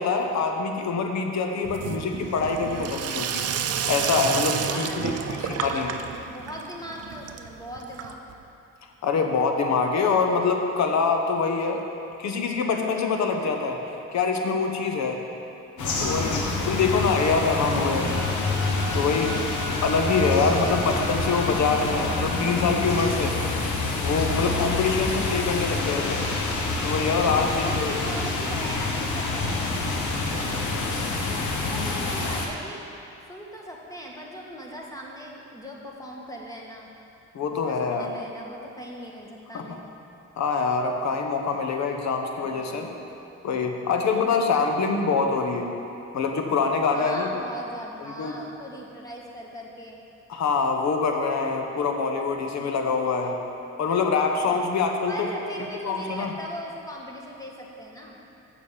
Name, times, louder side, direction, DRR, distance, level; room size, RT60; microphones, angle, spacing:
voice 1, 0.0-5.9 9.0-11.8 12.2-13.8 14.1-15.2 16.0-18.3 18.9-19.4 19.8-23.4 24.0-26.2 26.8-28.0 37.3-38.1 39.5-39.7 40.4-42.9 43.4-45.7 46.1-47.3 48.2-48.4 50.3-53.4 53.8-55.3 55.8-56.3, left 4 dB, 65° left, 4 dB, 1.1 m, -25 dB
Sink (filling or washing), 1.6-8.4, right 8 dB, 55° right, 0.6 m, -31 dB
voice 2, 4.2-8.2 15.7-16.6 20.4-20.9 21.5-22.2 27.3-32.8 33.3-36.9 37.7-39.8 42.4-43.1 44.0-44.4 46.9-50.0 54.4-54.7 55.1-58.2, equal, 10° left, -2 dB, 1.5 m, -39 dB
sound 1, 15.8-32.5, left 3 dB, 80° left, 1.2 m, -27 dB
Bowed string instrument, 18.0-23.0, left 1 dB, 30° left, 2.5 m, -39 dB
7.3 x 6.6 x 7.2 m, 2.7 s
cardioid pair, 90°, 30 cm